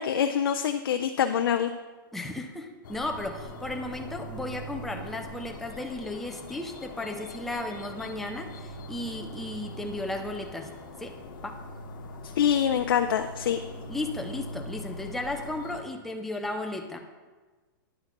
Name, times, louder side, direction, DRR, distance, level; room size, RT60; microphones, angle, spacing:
voice 1, 0.0-1.7 12.4-13.6, left 9 dB, 90° left, 8 dB, 0.4 m, -25 dB
voice 2, 2.1-10.7 11.0-11.2 11.4-11.6 13.9-17.0, left 2 dB, ahead, 3 dB, 0.4 m, -35 dB
sound 1, 2.8-15.8, left 1 dB, 65° left, 1.0 m, -42 dB
10.0 x 5.8 x 2.9 m, 1.3 s
hypercardioid pair, 165°, 11 cm